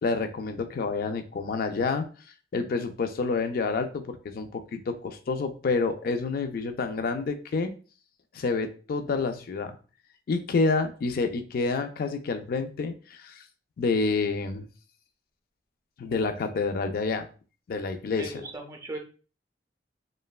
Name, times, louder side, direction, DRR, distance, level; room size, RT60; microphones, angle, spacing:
voice 1, 0.0-2.1 2.5-7.7 8.3-9.8 10.3-13.4 13.8-14.7 16.0-17.3 17.7-18.4, left 4 dB, 55° left, 8 dB, 0.3 m, -28 dB
voice 2, 18.1-19.0, right 2 dB, 20° right, 3 dB, 0.5 m, -38 dB
3.0 x 2.1 x 2.3 m, 0.37 s
head